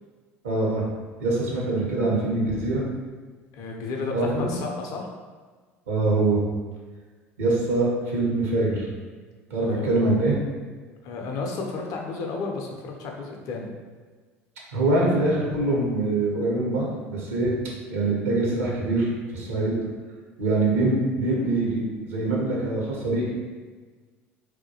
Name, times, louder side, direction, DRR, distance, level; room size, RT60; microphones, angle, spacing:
voice 1, 0.4-0.8 1.2-2.8 4.1-4.5 5.9-6.4 7.4-8.9 9.5-10.4 14.7-17.5 17.9-19.8 20.4-23.3, right 2 dB, 80° right, -3 dB, 0.6 m, -24 dB
voice 2, 3.5-5.1 9.7-9.9 11.0-13.7, left 4 dB, 55° left, 0 dB, 0.5 m, -32 dB
2.2 x 2.1 x 2.7 m, 1.4 s
hypercardioid pair, 65°, 7 cm